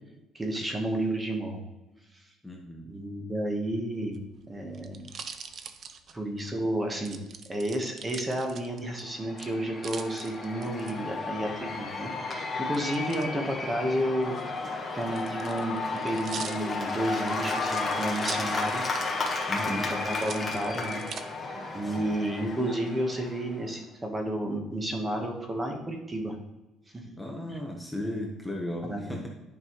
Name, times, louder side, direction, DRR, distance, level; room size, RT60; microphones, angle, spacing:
voice 1, 0.3-1.6 2.1-2.2 2.9-5.1 6.1-7.2 7.5-18.8 19.6-21.0 21.7-26.4 26.9-27.1 27.5-27.6 28.9-29.2, right 1 dB, 15° right, 3 dB, 1.2 m, -31 dB
voice 2, 2.4-2.9 19.5-19.9 21.8-22.1 27.2-29.3, left 1 dB, 5° left, 0 dB, 1.0 m, -35 dB
sound 1, 4.0-6.5 7.0-9.0 9.4-10.9 12.7-13.3 14.2-19.1 19.4-19.5 20.1-21.2 21.8-22.4, right 6 dB, 45° right, 0.6 m, -43 dB
Cheering / Applause / Crowd, 8.9-23.7, left 3 dB, 25° left, 1.3 m, -33 dB
9.8 x 5.4 x 3.1 m, 1.0 s
cardioid pair, 120°, 0 cm